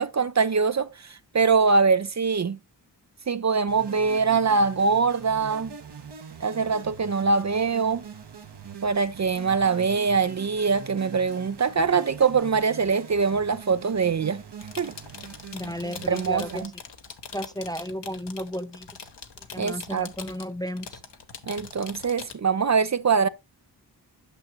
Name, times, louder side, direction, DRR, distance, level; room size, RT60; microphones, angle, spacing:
voice 1, 0.0-2.6 3.3-5.7 6.4-8.0 8.8-14.4 14.8-14.9 16.1-16.7 19.6-20.1 21.5-23.3, right 5 dB, 40° right, 0.5 m, -23 dB
sound 1, 3.7-16.6, right 6 dB, 65° right, 1.1 m, -43 dB
sound 2, 14.5-22.3, left 5 dB, 65° left, 1.1 m, -43 dB
voice 2, 15.5-16.7 17.3-18.9 19.5-21.0, equal, 10° left, 0.5 m, -33 dB
9.0 x 5.9 x 2.9 m
cardioid pair, 45°, 44 cm